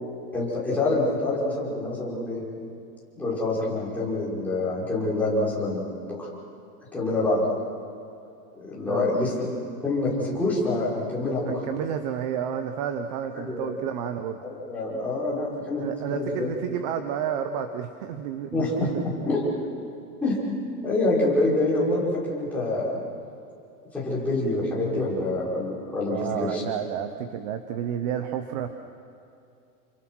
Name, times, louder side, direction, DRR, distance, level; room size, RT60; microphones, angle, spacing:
voice 1, 0.3-2.4 3.2-6.3 6.9-7.4 8.5-9.5 9.8-11.5 13.3-13.7 14.4-15.8 16.1-16.5 18.5-18.9 19.3-19.4 20.2-20.4 20.8-22.9 23.9-26.2 26.5-26.6, left 2 dB, 5° left, -8 dB, 5.4 m, -26 dB
voice 2, 11.5-14.4 15.8-19.3 26.1-28.7, right 9 dB, 25° right, 8 dB, 0.9 m, -31 dB
30.0 x 25.5 x 6.3 m, 2.7 s
supercardioid pair, 180°, 48 cm